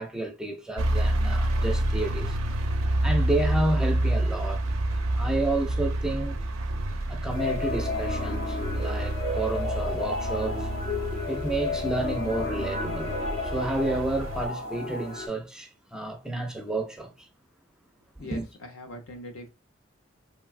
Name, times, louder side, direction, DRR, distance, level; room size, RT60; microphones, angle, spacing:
voice 1, 0.0-2.4 3.0-4.6 5.1-6.4 7.1-10.7 11.3-13.2 13.4-17.3 18.2-18.5, right 2 dB, 5° right, 0.4 m, -30 dB
sound 1, 0.8-14.5, right 1 dB, 85° right, 0.5 m, -28 dB
sound 2, 7.3-15.3, left 3 dB, 50° left, 0.7 m, -33 dB
voice 2, 18.2-19.5, left 1 dB, 85° left, 0.8 m, -41 dB
3.1 x 2.2 x 2.3 m
head